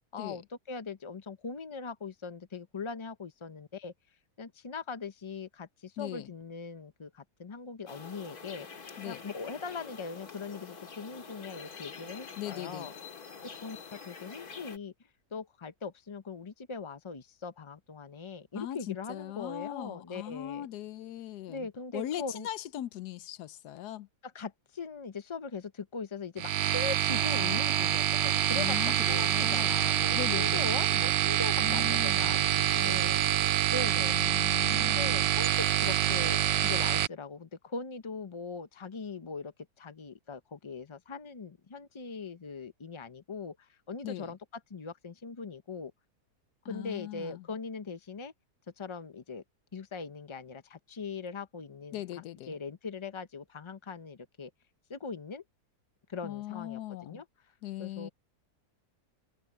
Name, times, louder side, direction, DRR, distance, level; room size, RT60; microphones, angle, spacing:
voice 1, 0.1-3.9 4.4-8.7 9.0-12.9 13.6-14.9 15.3-20.7 21.5-22.5 24.2-33.2 33.7-34.2 34.7-39.5 39.8-44.4 44.7-45.9 46.7-48.3 48.8-49.4 49.7-52.0 52.5-54.5 54.9-55.4 56.1-57.2 57.8-58.1, left 4 dB, 50° left, 0.3 m, -40 dB
voice 2, 6.0-6.3 9.0-9.3 12.4-12.9 18.5-24.1 28.6-29.7 30.1-30.8 31.6-32.3 32.8-33.4 34.0-35.3 44.0-44.3 46.6-47.5 51.9-52.6 56.2-57.2 57.6-58.1, left 13 dB, 90° left, 1.3 m, -40 dB
sound 1, 7.9-14.8, left 5 dB, 70° left, 2.7 m, -46 dB
sound 2, 26.4-37.1, right 12 dB, 85° right, 0.5 m, -26 dB
omnidirectional pair, 1.7 m